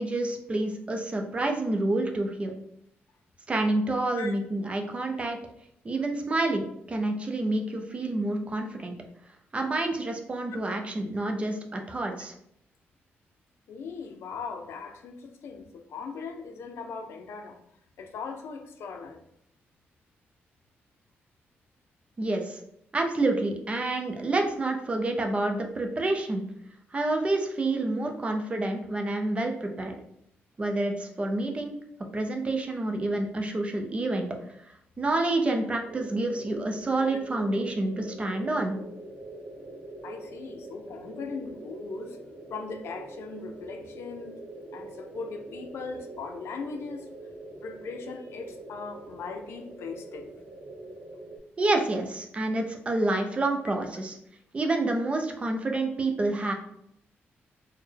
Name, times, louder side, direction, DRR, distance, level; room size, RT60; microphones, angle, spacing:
voice 1, 0.0-2.5 3.5-5.4 5.8-8.9 9.5-12.3 22.2-22.6 22.9-26.4 26.9-29.9 30.6-31.7 32.1-34.3 35.0-38.8 51.6-54.2 54.5-56.5, right 2 dB, 30° right, 4 dB, 0.5 m, -28 dB
voice 2, 13.7-17.6 18.0-19.3 40.0-42.2 42.5-44.4 44.7-47.1 47.6-50.3, left 5 dB, 75° left, 6 dB, 0.4 m, -39 dB
sound 1, 35.8-51.4, right 2 dB, 65° right, 0.8 m, -43 dB
4.2 x 2.1 x 3.3 m, 0.75 s
cardioid pair, 125°, 4 cm